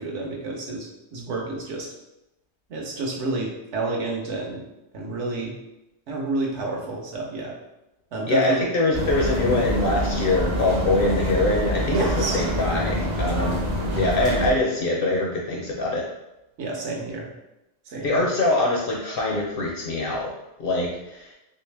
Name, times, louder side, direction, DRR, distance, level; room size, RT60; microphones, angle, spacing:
voice 1, 0.0-1.9 2.7-4.6 4.9-5.5 6.1-7.5 8.1-8.7 11.9-12.4 16.6-17.3 17.9-18.2, right 2 dB, 65° right, -1 dB, 1.0 m, -29 dB
voice 2, 8.3-13.6 13.9-16.0 18.0-20.3 20.6-21.3, left 2 dB, 60° left, -1 dB, 0.6 m, -24 dB
sound 1, 8.9-14.5, equal, 45° right, 0.6 m, -26 dB
3.1 x 2.7 x 3.2 m, 0.93 s
omnidirectional pair, 1.3 m